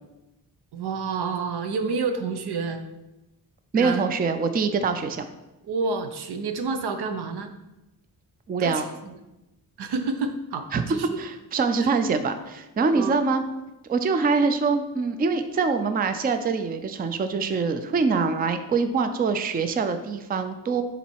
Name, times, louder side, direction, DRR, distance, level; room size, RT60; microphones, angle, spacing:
voice 1, 0.7-2.8 3.7-4.1 5.6-7.5 8.6-9.1 9.8-11.2 12.9-13.1, right 4 dB, 85° right, 7 dB, 0.8 m, -29 dB
voice 2, 3.7-5.2 8.5-8.9 10.7-10.8 11.2-13.4 13.9-20.8, right 4 dB, 25° right, 9 dB, 0.4 m, -24 dB
7.1 x 4.0 x 4.6 m, 0.98 s
wide cardioid pair, 155°, 38 cm